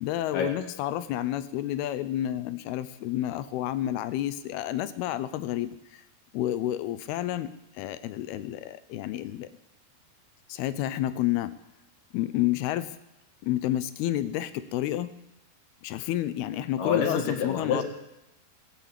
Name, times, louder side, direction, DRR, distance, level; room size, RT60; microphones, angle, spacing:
voice 1, 0.0-6.0 6.3-9.5 10.5-11.5 12.1-13.0 13.4-15.1 15.8-17.8, left 13 dB, 80° left, 14 dB, 2.5 m, -30 dB
voice 2, 16.8-17.8, left 6 dB, 55° left, 3 dB, 3.2 m, -27 dB
17.0 x 10.0 x 8.2 m, 0.91 s
omnidirectional pair, 4.8 m